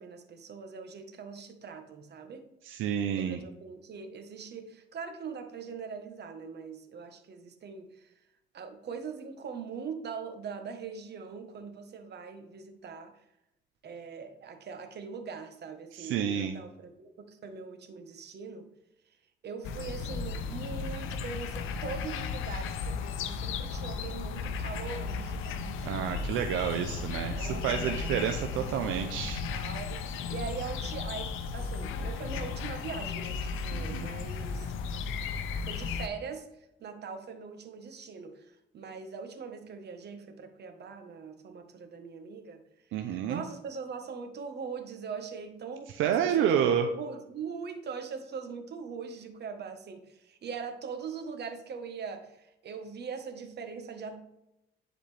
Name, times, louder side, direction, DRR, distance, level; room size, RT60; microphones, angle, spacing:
voice 1, 0.0-2.4 3.2-8.1 8.5-13.1 13.8-18.7 19.4-26.4 27.4-29.9 30.3-34.7 35.6-36.5 36.8-42.6 43.0-54.2, right 5 dB, 55° right, 6 dB, 1.2 m, -42 dB
voice 2, 2.7-3.4 15.9-16.5 25.8-29.4 33.7-34.1 42.9-43.4 46.0-46.9, right 9 dB, 90° right, 6 dB, 0.5 m, -29 dB
sound 1, 19.6-36.1, left 5 dB, 90° left, 0.6 m, -35 dB
10.0 x 4.2 x 3.3 m, 0.87 s
cardioid pair, 90°, 20 cm